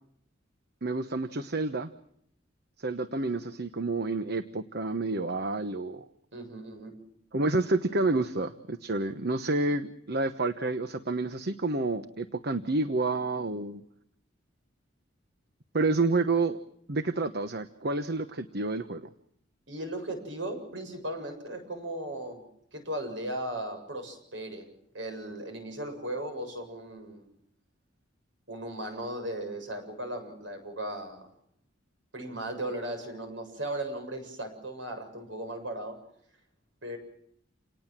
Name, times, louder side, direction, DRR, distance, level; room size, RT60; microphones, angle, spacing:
voice 1, 0.8-1.9 2.8-6.0 7.3-13.8 15.7-16.6 16.9-19.1, right 3 dB, 55° right, 10 dB, 1.2 m, -29 dB
voice 2, 6.3-7.0 19.7-22.4 22.7-24.7 24.9-27.3 28.5-31.3 32.1-36.0 36.8-37.0, right 1 dB, 75° right, 6 dB, 7.5 m, -37 dB
29.5 x 19.5 x 7.5 m, 0.70 s
head